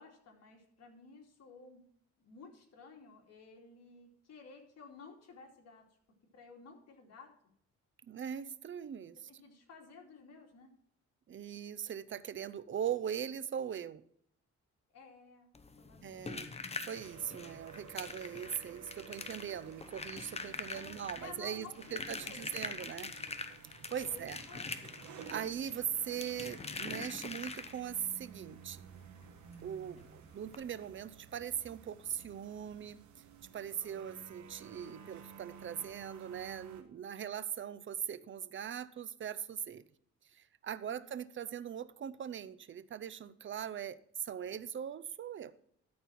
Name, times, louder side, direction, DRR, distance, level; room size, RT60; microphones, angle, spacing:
voice 1, 0.0-1.8 2.2-5.8 6.3-7.3 9.3-10.7 14.9-15.5 15.8-16.5 16.8-16.9 20.7-23.3 24.0-24.7 40.8-41.1, left 4 dB, 55° left, 2.7 m, -54 dB
voice 2, 8.1-9.3 11.3-14.0 16.0-16.5 16.8-23.1 23.9-24.4 25.3-28.9 29.6-33.2 33.5-39.8 40.3-45.5, right 9 dB, 40° right, 0.6 m, -40 dB
sound 1, 15.5-28.1 29.5-29.6 29.9-30.0 30.5-30.6, left 4 dB, 20° left, 0.9 m, -44 dB
sound 2, 16.9-36.8, right 7 dB, 70° right, 1.4 m, -54 dB
13.0 x 4.4 x 5.9 m
cardioid pair, 90°, 30 cm